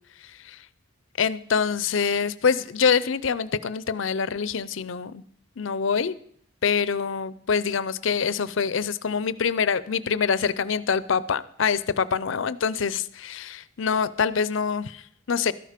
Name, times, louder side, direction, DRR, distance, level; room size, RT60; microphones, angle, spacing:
voice 1, 1.2-5.2 5.6-6.2 6.6-15.5, left 6 dB, 65° left, 17 dB, 0.5 m, -25 dB
13.0 x 11.0 x 5.1 m, 0.64 s
head